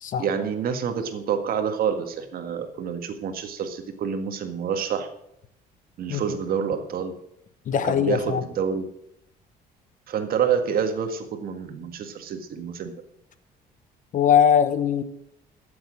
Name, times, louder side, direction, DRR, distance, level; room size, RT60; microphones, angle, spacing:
voice 1, 0.2-5.1 6.0-7.1 7.7-8.9 10.1-12.9, right 7 dB, 60° right, 7 dB, 1.7 m, -27 dB
voice 2, 7.7-8.4 14.1-15.0, left 8 dB, 50° left, 13 dB, 0.9 m, -20 dB
12.5 x 7.3 x 6.3 m, 0.77 s
cardioid pair, 110°, 17 cm